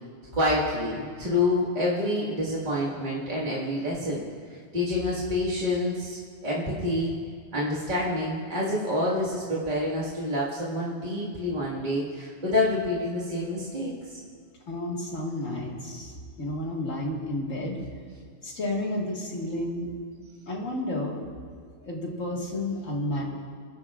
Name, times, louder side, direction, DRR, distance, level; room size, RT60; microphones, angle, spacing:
voice 1, 0.3-4.2 4.7-7.2 7.5-14.2, left 1 dB, 35° right, -7 dB, 2.0 m, -27 dB
voice 2, 14.7-16.1 16.4-17.8 18.4-19.9 20.5-21.2 21.8-23.2, left 1 dB, 75° left, -2 dB, 2.3 m, -31 dB
22.5 x 12.0 x 2.5 m, 2.1 s
omnidirectional pair, 1.3 m